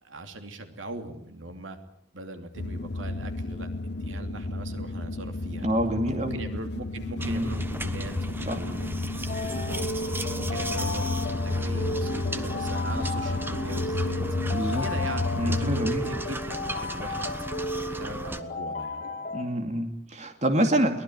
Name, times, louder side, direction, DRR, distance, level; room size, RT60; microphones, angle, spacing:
voice 1, 0.0-1.8 2.1-5.7 6.1-9.0 9.4-9.9 10.3-14.2 14.8-17.3 17.8-19.0, right 2 dB, 75° right, 6 dB, 2.9 m, -40 dB
sound 1, 2.5-15.9, left 2 dB, 55° left, 1.2 m, -32 dB
voice 2, 5.6-6.4 7.2-7.5 8.4-8.6 14.5-14.8 15.4-16.2 19.3-21.0, right 1 dB, 35° right, 5 dB, 2.5 m, -27 dB
sound 2, 7.2-18.4, right 1 dB, 10° right, 1.1 m, -36 dB
sound 3, 9.3-19.4, left 2 dB, 40° left, 6.3 m, -34 dB
23.0 x 19.0 x 9.4 m, 0.66 s
head